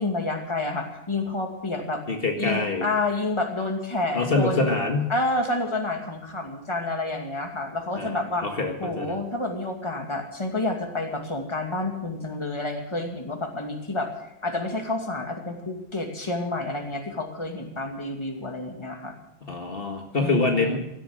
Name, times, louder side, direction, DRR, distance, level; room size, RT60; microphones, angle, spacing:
voice 1, 0.0-2.0 2.4-4.7 5.1-8.5 8.8-14.1 14.4-19.1 20.2-20.8, left 2 dB, 25° left, 3 dB, 2.5 m, -29 dB
voice 2, 2.1-2.9 4.1-5.1 8.0-9.2 19.4-20.8, left 3 dB, 60° left, 2 dB, 2.0 m, -25 dB
17.0 x 13.0 x 6.5 m, 0.88 s
omnidirectional pair, 1.1 m